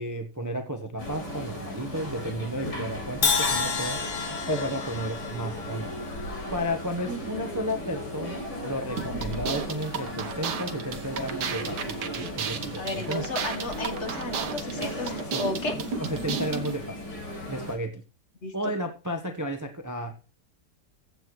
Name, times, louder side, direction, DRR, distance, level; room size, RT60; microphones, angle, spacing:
voice 1, 0.0-4.0 4.5-5.9 6.5-13.2 15.3-15.4 15.8-17.1 17.5-18.0 18.5-20.1, equal, 15° right, 5 dB, 0.8 m, -33 dB
sound 1, 1.0-17.7, left 1 dB, 80° left, 4.8 m, -36 dB
Crash cymbal, 3.2-7.3, left 5 dB, 60° left, 2.0 m, -30 dB
voice 2, 7.1-7.4 12.8-15.8 18.4-18.7, left 2 dB, 45° left, 6 dB, 1.6 m, -33 dB
sound 2, 9.0-16.8, right 6 dB, 70° right, 1.7 m, -34 dB
15.0 x 8.5 x 3.2 m, 0.35 s
omnidirectional pair, 1.9 m